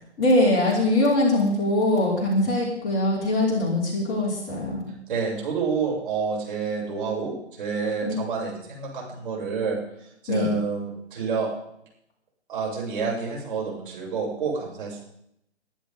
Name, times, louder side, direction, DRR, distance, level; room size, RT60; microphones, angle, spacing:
voice 1, 0.2-4.9 8.0-8.1 10.3-10.5, left 1 dB, 20° left, -5 dB, 5.2 m, -22 dB
voice 2, 5.1-9.8 10.2-11.5 12.5-15.0, right 5 dB, 50° right, -3 dB, 8.0 m, -28 dB
21.5 x 11.5 x 4.0 m, 0.74 s
figure-of-eight pair, 135°, 34 cm